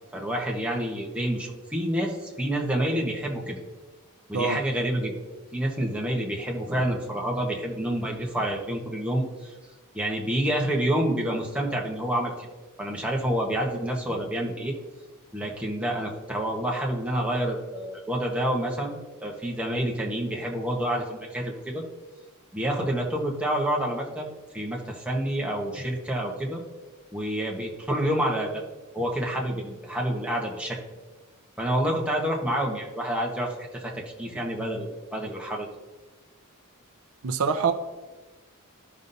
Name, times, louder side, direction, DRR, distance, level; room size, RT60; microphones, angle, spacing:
voice 1, 0.1-3.6 4.3-5.1 5.5-9.5 9.9-12.5 12.8-14.7 15.3-21.8 22.5-24.3 24.5-26.6 27.1-28.6 28.9-30.8 31.6-33.9 34.2-35.7, right 1 dB, 5° right, -2 dB, 1.1 m, -28 dB
voice 2, 37.2-37.7, right 5 dB, 70° right, 8 dB, 0.5 m, -24 dB
13.5 x 5.4 x 2.7 m, 1.2 s
head